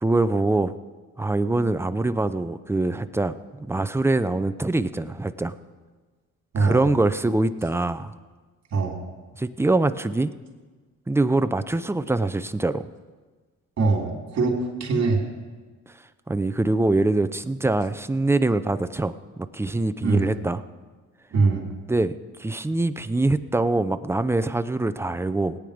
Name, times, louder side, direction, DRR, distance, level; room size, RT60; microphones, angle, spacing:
voice 1, 0.0-0.8 1.2-5.5 6.6-8.1 9.4-10.3 11.1-12.9 16.3-20.6 21.9-25.6, right 2 dB, 10° right, 12 dB, 0.6 m, -24 dB
voice 2, 13.8-15.2 20.0-20.3 21.3-21.7, right 4 dB, 60° right, 1 dB, 3.3 m, -22 dB
17.5 x 9.6 x 5.1 m, 1.4 s
cardioid pair, 90°, 30 cm